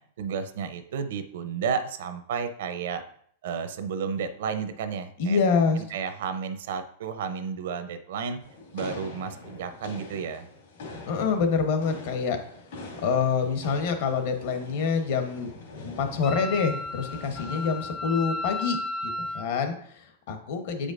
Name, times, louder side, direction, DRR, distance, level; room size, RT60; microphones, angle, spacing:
voice 1, 0.2-3.0 3.4-5.4 5.9-8.4 8.7-10.5, right 6 dB, 70° right, 9 dB, 0.6 m, -32 dB
voice 2, 5.2-5.8 11.0-12.4 13.0-15.5 15.8-18.8 19.0-20.9, left 5 dB, 55° left, 6 dB, 1.0 m, -26 dB
sound 1, 8.4-17.9, left 3 dB, 75° left, 2.4 m, -43 dB
Wind instrument woodwind instrument, 16.2-19.5, left 2 dB, 10° left, 0.4 m, -34 dB
7.9 x 5.0 x 2.5 m, 0.63 s
supercardioid pair, 160°, 0 cm